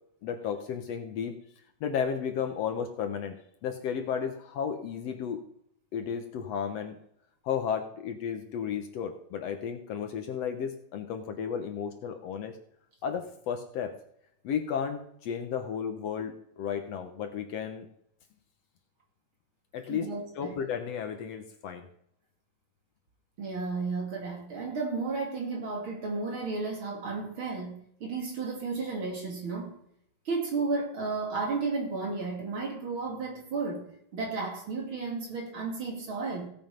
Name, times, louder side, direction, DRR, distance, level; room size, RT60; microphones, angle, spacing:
voice 1, 0.2-1.4 1.8-3.4 3.6-5.4 5.9-7.0 7.4-12.6 13.0-14.0 14.4-17.9 19.7-21.9, left 7 dB, 65° left, 2.0 m, -33 dB
voice 2, 19.9-20.6 23.4-29.8 30.3-33.9 34.1-36.5, right 4 dB, 45° right, 2.8 m, -33 dB
16.5 x 7.6 x 5.3 m
omnidirectional pair, 3.4 m